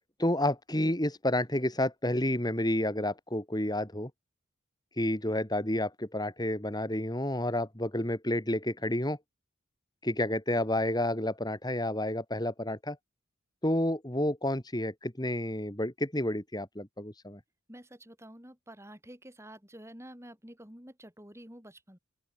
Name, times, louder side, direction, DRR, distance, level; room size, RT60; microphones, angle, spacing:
voice 1, 0.2-4.1 5.0-9.2 10.0-13.0 13.6-17.4, left 1 dB, 20° left, 3.7 m, -30 dB
voice 2, 17.7-22.0, right 1 dB, 15° right, 7.2 m, -49 dB
open air
head